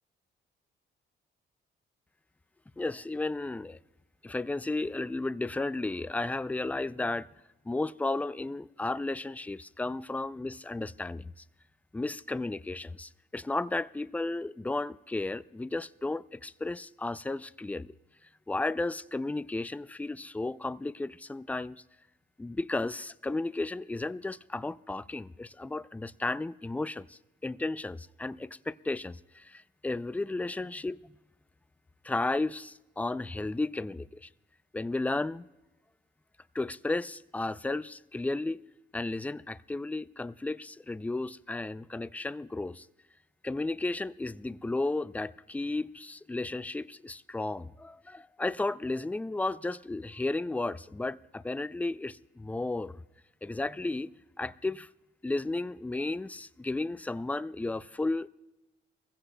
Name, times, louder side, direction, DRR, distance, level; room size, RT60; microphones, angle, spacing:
voice 1, 2.8-3.8 4.2-7.3 7.7-11.3 11.9-17.9 18.5-21.8 22.4-31.1 32.0-34.3 34.7-35.5 36.5-38.6 38.9-42.9 43.4-53.0 53.4-54.1 54.4-54.9 55.2-58.3, left 2 dB, 5° left, 0.3 m, -33 dB
22.5 x 15.5 x 2.2 m
cardioid pair, 90°, 20 cm